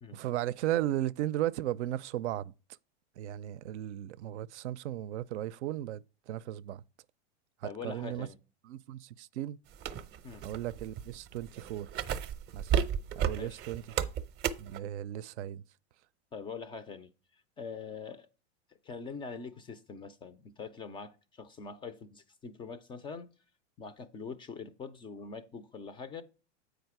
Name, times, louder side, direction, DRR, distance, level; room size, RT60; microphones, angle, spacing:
voice 1, 0.1-2.5 3.2-6.8 7.6-8.3 8.7-9.6 10.4-11.9 12.5-12.7 13.2-13.8 14.6-15.6, right 13 dB, 75° right, 0.5 m, -35 dB
voice 2, 7.6-8.4 10.2-10.4 13.4-13.6 16.3-17.1 17.6-18.3 18.8-23.3 23.8-26.2, left 5 dB, 15° left, 0.3 m, -43 dB
sound 1, 9.7-14.8, right 9 dB, 30° right, 0.6 m, -33 dB
8.0 x 5.0 x 4.6 m
hypercardioid pair, 125°, 35 cm